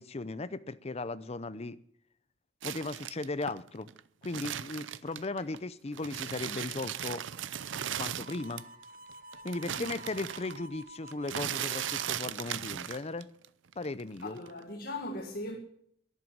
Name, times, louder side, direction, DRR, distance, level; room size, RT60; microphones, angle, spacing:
voice 1, 0.0-1.8 2.6-3.9 4.2-7.2 8.0-8.6 9.4-13.3 13.8-14.4, left 2 dB, 35° left, 0.7 m, -37 dB
sound 1, 2.6-5.6 5.9-8.8 9.1-13.5 13.7-14.6, right 10 dB, 90° right, 0.6 m, -37 dB
Harmonica, 8.2-12.2, right 1 dB, 50° right, 1.3 m, -50 dB
voice 2, 14.2-15.6, left 1 dB, 55° left, 1.8 m, -39 dB
11.5 x 11.0 x 7.3 m
head